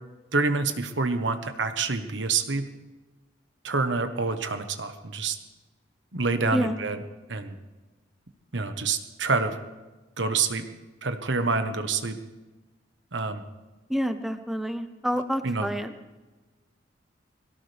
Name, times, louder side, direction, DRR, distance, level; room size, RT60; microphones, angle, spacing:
voice 1, 0.3-2.7 3.6-5.4 6.1-7.0 7.3-7.6 8.5-9.5 10.2-10.6 11.0-12.2 13.1-13.4 15.4-15.7, right 4 dB, 70° right, 8 dB, 1.3 m, -27 dB
voice 2, 13.9-15.9, equal, ahead, 8 dB, 0.8 m, -28 dB
23.0 x 17.0 x 3.5 m, 1.2 s
head